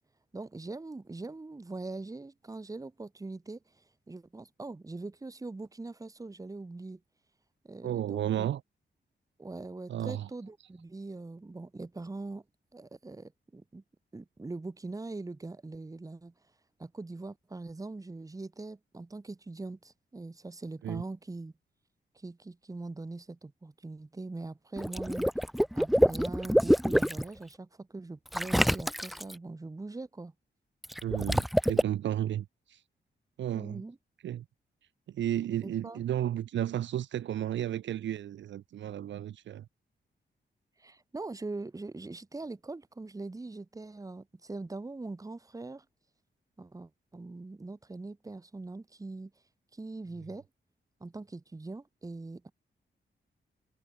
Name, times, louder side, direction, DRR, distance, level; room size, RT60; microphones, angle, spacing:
voice 1, 0.3-3.6 4.1-7.0 7.6-8.5 9.4-12.4 12.7-13.8 14.1-16.3 16.8-21.5 22.1-25.3 25.7-30.3 33.5-34.0 35.6-36.0 40.8-45.8 46.6-49.3 49.7-50.4 51.0-52.5, right 3 dB, 20° right, 1.0 m, -42 dB
voice 2, 7.8-8.6 9.9-10.3 20.8-21.0 31.0-32.8 33.4-33.8 34.2-34.5 35.1-39.7, right 11 dB, 75° right, 0.5 m, -33 dB
Water / Liquid, 24.8-27.2 28.3-29.3 30.8-31.8, equal, ahead, 0.4 m, -26 dB
cardioid pair, 90°, 19 cm